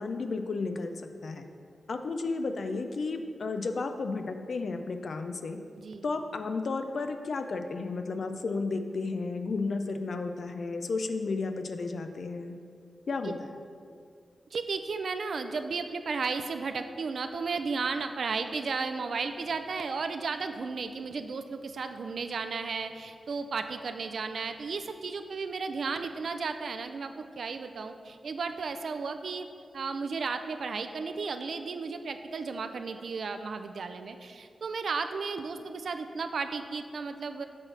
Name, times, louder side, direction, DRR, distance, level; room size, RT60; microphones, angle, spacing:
voice 1, 0.0-1.5 1.9-5.6 6.0-12.6 13.1-13.5, left 3 dB, 60° left, 7 dB, 0.5 m, -33 dB
voice 2, 14.5-29.5 29.7-37.4, right 4 dB, 65° right, 8 dB, 0.4 m, -34 dB
8.2 x 6.3 x 3.3 m, 2.3 s
wide cardioid pair, 115°, 0 cm